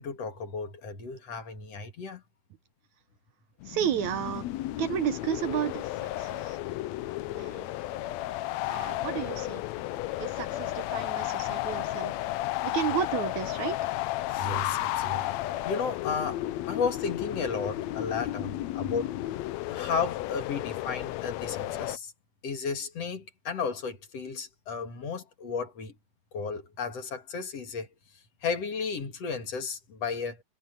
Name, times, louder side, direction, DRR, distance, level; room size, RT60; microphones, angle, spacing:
voice 1, 0.0-2.2 14.3-19.1 19.7-22.1 22.4-25.9 26.3-27.9 28.4-30.4, left 5 dB, 55° left, 2.9 m, -34 dB
sound 1, 3.6-22.0, left 15 dB, 80° left, 1.6 m, -33 dB
voice 2, 3.7-4.5 4.8-6.6 7.3-7.7 8.7-9.6 10.2-12.1 12.6-13.8, right 10 dB, 70° right, 2.1 m, -32 dB
omnidirectional pair, 3.8 m